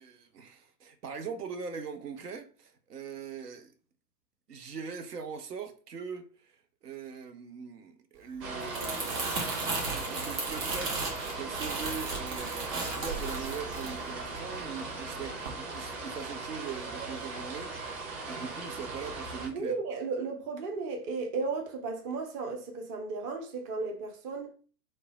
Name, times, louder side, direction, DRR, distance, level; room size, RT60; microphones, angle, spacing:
voice 1, 0.0-3.7 4.5-6.5 6.8-19.8, right 6 dB, 75° right, 0.7 m, -41 dB
sound 1, 8.4-19.5, right 3 dB, 40° right, 1.1 m, -38 dB
Crumpling crinkling, 8.4-14.8 15.2-15.5, right 3 dB, 60° right, 1.3 m, -35 dB
voice 2, 19.5-24.5, right 4 dB, 25° right, 0.4 m, -34 dB
3.2 x 2.1 x 3.9 m
figure-of-eight pair, 95°, 47 cm